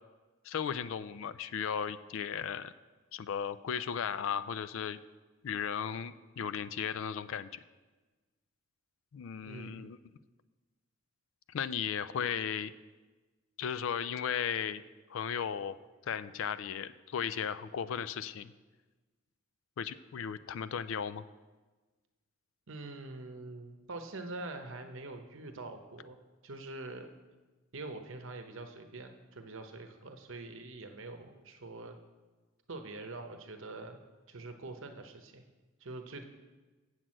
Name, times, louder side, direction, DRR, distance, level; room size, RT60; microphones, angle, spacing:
voice 1, 0.4-2.7 3.1-5.0 5.4-7.6 9.1-10.0 11.5-12.7 13.6-14.8 15.1-15.8 16.1-18.5 19.8-21.2, left 7 dB, 60° left, 14 dB, 0.4 m, -36 dB
voice 2, 9.4-9.9 22.7-26.2 26.4-27.1 27.7-32.0 32.7-34.0 34.3-35.4 35.8-36.2, right 2 dB, 60° right, 6 dB, 0.9 m, -44 dB
7.8 x 6.1 x 7.5 m, 1.3 s
head